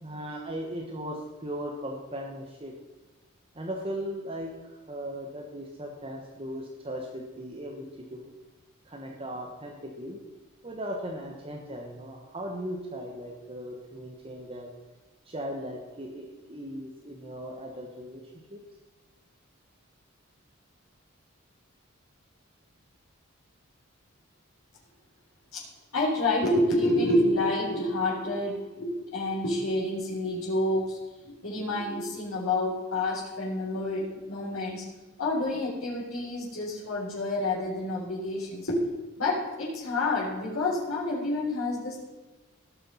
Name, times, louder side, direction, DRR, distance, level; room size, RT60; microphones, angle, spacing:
voice 1, 0.0-2.7 3.5-8.3 8.8-10.2 10.6-14.7 15.2-18.2 18.5-18.6, equal, 25° right, 1 dB, 1.1 m, -38 dB
voice 2, 25.9-31.0 31.2-34.8 35.2-38.8 39.2-42.0, left 1 dB, 85° left, -9 dB, 4.0 m, -28 dB
17.0 x 6.7 x 5.5 m, 1.2 s
head